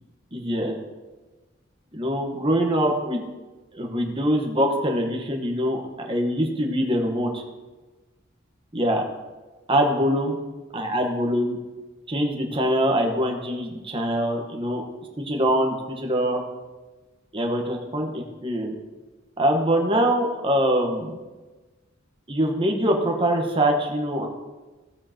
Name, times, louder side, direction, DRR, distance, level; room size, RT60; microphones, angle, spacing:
voice 1, 0.3-0.8 1.9-3.2 3.7-7.4 8.7-9.0 9.7-10.4 10.7-11.6 12.1-14.8 15.2-16.4 17.3-18.7 19.4-21.2 22.3-24.3, equal, 25° right, 2 dB, 1.3 m, -23 dB
16.0 x 7.5 x 3.0 m, 1.2 s
head